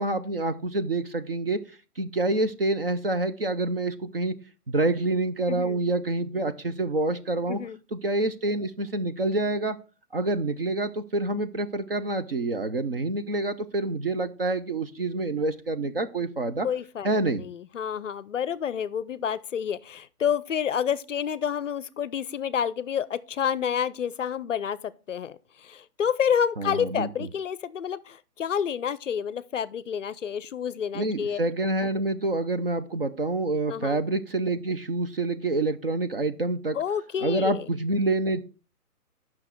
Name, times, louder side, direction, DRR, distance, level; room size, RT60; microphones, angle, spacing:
voice 1, 0.0-1.6 2.0-4.4 4.7-7.6 7.9-9.8 10.1-16.7 17.0-17.4 26.6-27.3 30.9-36.8 37.2-38.4, right 2 dB, 40° right, 0.5 m, -27 dB
voice 2, 5.5-5.8 7.5-7.8 16.6-31.4 33.7-34.0 36.7-37.7, left 8 dB, 55° left, 0.5 m, -29 dB
8.7 x 5.9 x 4.4 m
hypercardioid pair, 160°, 46 cm